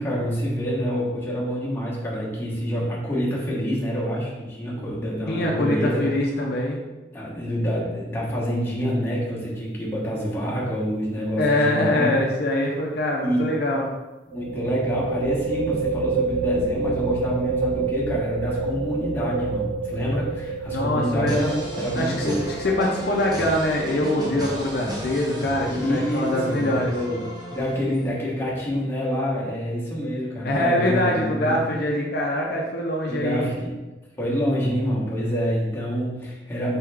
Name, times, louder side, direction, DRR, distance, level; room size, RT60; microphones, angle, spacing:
voice 1, 0.0-6.1 7.1-12.1 13.2-13.5 14.3-22.4 25.6-27.2 27.5-31.6 33.1-33.7 34.2-36.8, equal, 10° left, -6 dB, 1.1 m, -27 dB
voice 2, 5.3-6.8 11.4-13.9 20.7-21.4 22.0-26.9 30.4-33.5, left 1 dB, 55° left, -1 dB, 0.6 m, -24 dB
sound 1, 11.2-11.5 11.7-11.8 14.3-25.7, right 4 dB, 80° right, 0.3 m, -29 dB
sound 2, 21.3-28.2, right 1 dB, 20° right, 0.7 m, -34 dB
4.3 x 3.5 x 3.4 m, 1.1 s
head